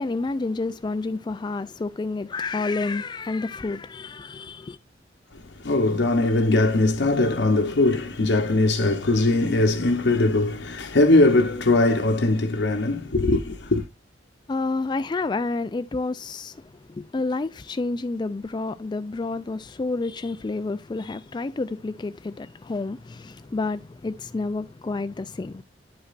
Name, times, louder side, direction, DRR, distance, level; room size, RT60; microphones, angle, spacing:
voice 1, 0.0-4.8 14.5-25.6, left 3 dB, 25° left, 0.3 m, -29 dB
voice 2, 5.3-13.8, left 2 dB, 75° left, 0.9 m, -21 dB
11.0 x 5.1 x 2.5 m
head